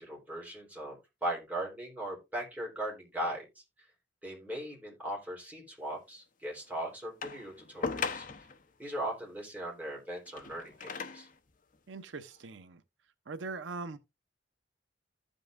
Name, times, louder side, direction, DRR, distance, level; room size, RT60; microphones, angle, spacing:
voice 1, 0.0-3.4 4.2-8.3 8.8-11.3, right 1 dB, 10° right, 3.6 m, -38 dB
sound 1, 7.2-8.6 10.2-11.4 12.2-12.3, left 5 dB, 45° left, 0.8 m, -38 dB
voice 2, 11.9-12.8 13.3-14.0, right 4 dB, 85° right, 0.7 m, -41 dB
15.0 x 5.3 x 2.5 m
head